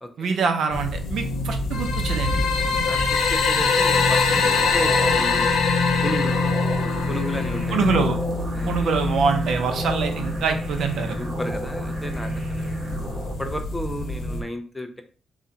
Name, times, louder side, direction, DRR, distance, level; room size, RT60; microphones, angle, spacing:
voice 1, 0.2-2.4 7.7-8.2 8.7-11.2, right 5 dB, 60° right, 6 dB, 0.7 m, -24 dB
sound 1, 0.7-14.4, left 2 dB, 65° left, 1.0 m, -28 dB
sound 2, 1.7-7.7, left 5 dB, 90° left, 0.7 m, -23 dB
voice 2, 2.8-5.6 6.0-6.4 7.1-7.9 8.5-8.8 10.9-12.8 13.4-15.0, equal, 5° left, 6 dB, 0.5 m, -33 dB
sound 3, 4.2-13.3, right 1 dB, 35° right, 1.0 m, -35 dB
7.1 x 2.4 x 2.8 m, 0.40 s
cardioid pair, 160°, 0 cm